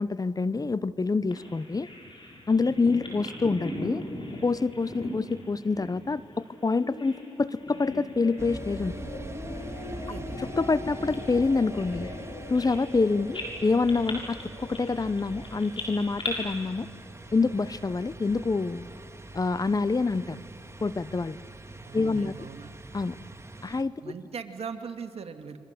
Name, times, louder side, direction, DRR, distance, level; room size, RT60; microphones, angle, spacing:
voice 1, 0.0-1.9 2.5-4.0 4.4-8.9 10.4-12.1 12.5-16.9 17.3-18.8 19.3-20.4 20.8-21.4 21.9-22.3 22.9-23.2 23.6-24.0, left 4 dB, 35° left, 17 dB, 0.8 m, -26 dB
Bird vocalization bird call bird song, 1.3-7.3 7.5-8.5 8.8-9.0 9.6-13.0 13.3-16.3, left 2 dB, 50° left, 7.2 m, -40 dB
sound 1, 6.8-19.4, left 2 dB, 80° left, 5.0 m, -43 dB
sound 2, 8.4-23.8, right 1 dB, 25° right, 2.2 m, -43 dB
voice 2, 9.9-10.4 21.8-22.7 24.0-25.6, right 6 dB, 65° right, 7 dB, 2.0 m, -40 dB
28.0 x 23.5 x 8.1 m, 2.4 s
supercardioid pair, 45°, 11 cm